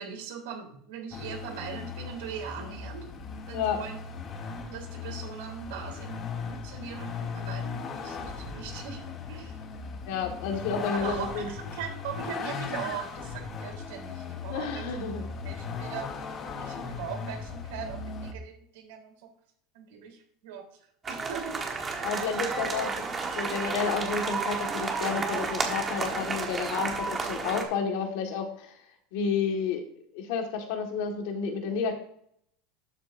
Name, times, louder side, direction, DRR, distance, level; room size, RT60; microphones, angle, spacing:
voice 1, 0.0-3.1 3.5-4.0 4.4-9.6 10.9-14.8 15.5-16.3 16.6-19.1 19.7-20.6 21.1-22.5 23.5-23.8, right 8 dB, 75° right, 2 dB, 3.5 m, -40 dB
Vehicle, 1.1-18.3, left 5 dB, 25° left, 1.0 m, -38 dB
voice 2, 10.1-11.5 14.5-15.3 22.0-23.0 23.4-28.7 29.1-29.8 30.1-31.9, left 6 dB, 60° left, 4 dB, 1.6 m, -30 dB
sound 1, 21.0-27.6, right 4 dB, 15° right, 1.2 m, -32 dB
12.0 x 7.9 x 2.6 m, 0.66 s
supercardioid pair, 175°, 0 cm